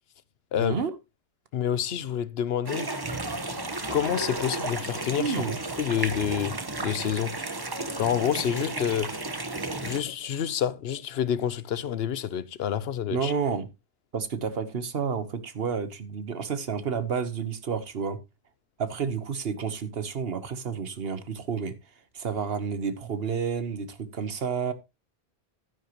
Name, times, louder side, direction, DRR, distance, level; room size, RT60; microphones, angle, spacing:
voice 1, 0.6-0.9 5.2-5.6 13.1-13.7 14.1-18.2 18.8-21.8 22.1-24.7, right 6 dB, 65° right, 1.3 m, -30 dB
voice 2, 1.5-3.0 3.9-5.4 5.8-7.4 8.0-9.2 9.8-13.3, left 9 dB, 70° left, 0.9 m, -28 dB
sound 1, 2.6-10.0, right 2 dB, 20° right, 1.0 m, -33 dB
11.5 x 10.0 x 2.9 m
omnidirectional pair, 1.1 m